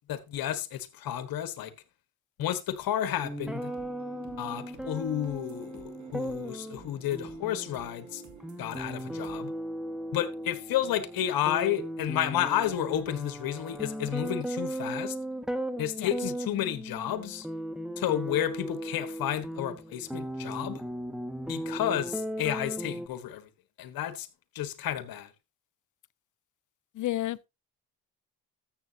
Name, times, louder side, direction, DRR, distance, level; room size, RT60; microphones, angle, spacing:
voice 1, 0.1-1.7 2.4-3.7 4.4-8.2 8.6-9.5 10.1-15.1 15.8-17.5 18.0-20.8 21.5-23.5 23.8-24.3 24.5-25.3, left 11 dB, 75° left, 1.3 m, -31 dB
sound 1, 3.2-23.1, right 1 dB, ahead, 1.6 m, -37 dB
sound 2, 3.4-10.8, right 6 dB, 55° right, 2.1 m, -52 dB
voice 2, 26.9-27.5, left 15 dB, 55° left, 0.6 m, -31 dB
13.5 x 7.5 x 2.8 m
supercardioid pair, 60°, 36 cm